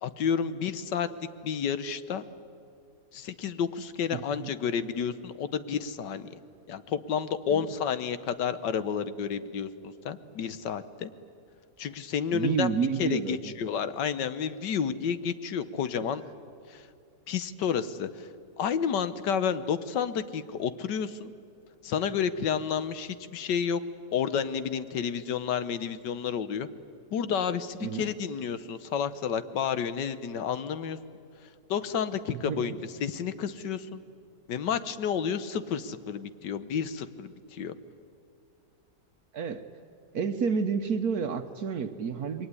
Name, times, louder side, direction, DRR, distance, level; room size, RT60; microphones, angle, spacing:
voice 1, 0.0-2.2 3.1-6.3 6.7-11.1 11.8-12.7 13.0-16.2 16.7-16.9 17.3-18.3 18.6-21.3 21.8-23.8 24.1-26.7 27.1-31.0 31.7-34.0 34.5-37.7, left 7 dB, 90° left, 13 dB, 1.7 m, -30 dB
voice 2, 4.1-4.5 7.5-7.7 12.3-13.5 27.8-28.1 32.3-32.8 39.3-39.6 40.1-42.5, right 6 dB, 65° right, 8 dB, 1.4 m, -30 dB
27.5 x 22.0 x 9.7 m, 2.5 s
omnidirectional pair, 1.8 m